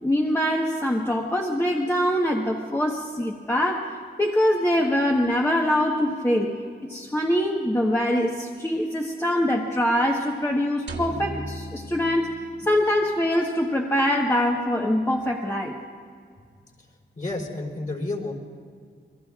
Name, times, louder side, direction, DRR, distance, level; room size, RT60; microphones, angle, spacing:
voice 1, 0.0-3.9 4.2-6.5 6.8-12.3 12.6-15.8, left 1 dB, 15° left, -1 dB, 1.2 m, -23 dB
sound 1, 10.9-13.2, right 1 dB, 70° right, 1.9 m, -36 dB
voice 2, 17.2-18.3, left 2 dB, 40° left, -2 dB, 3.9 m, -30 dB
26.5 x 21.5 x 2.4 m, 2.1 s
cardioid pair, 90°, 19 cm